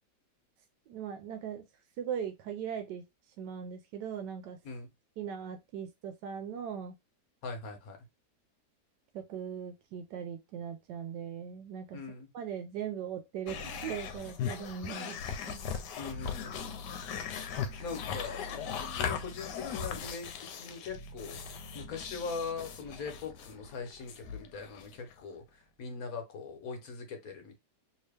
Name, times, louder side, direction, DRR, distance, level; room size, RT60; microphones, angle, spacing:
voice 1, 0.9-1.6 2.0-3.0 3.4-4.6 5.2-7.0 9.1-12.0 12.3-15.2 15.5-15.6, right 8 dB, 90° right, 1.2 m, -39 dB
voice 2, 7.4-8.0 11.9-12.3 16.0-17.0 17.8-18.5 18.8-21.4 21.7-27.6, left 4 dB, 60° left, 1.3 m, -41 dB
sound 1, 13.5-25.2, left 6 dB, 85° left, 1.2 m, -39 dB
3.0 x 2.8 x 3.3 m
omnidirectional pair, 1.8 m